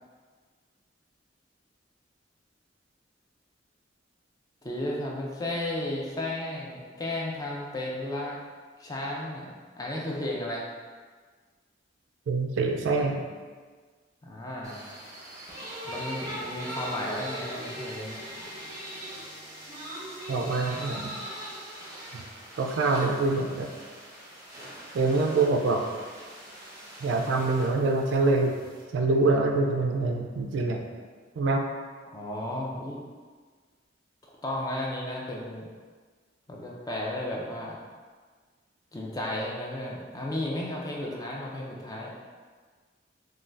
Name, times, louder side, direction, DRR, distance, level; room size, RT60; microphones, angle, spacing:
voice 1, 4.6-8.4 8.8-10.6 14.2-14.8 15.9-18.2 32.1-33.0 34.4-35.7 36.5-37.8 38.9-42.1, left 1 dB, 20° left, -3 dB, 0.4 m, -34 dB
voice 2, 12.3-13.2 20.3-21.2 22.1-22.2 22.6-23.7 24.9-25.8 27.0-28.6 28.9-30.8 31.4-31.6, right 3 dB, 70° right, 3 dB, 0.3 m, -25 dB
sound 1, 14.6-28.8, equal, 20° right, 0.6 m, -41 dB
2.5 x 2.2 x 3.2 m, 1.5 s
head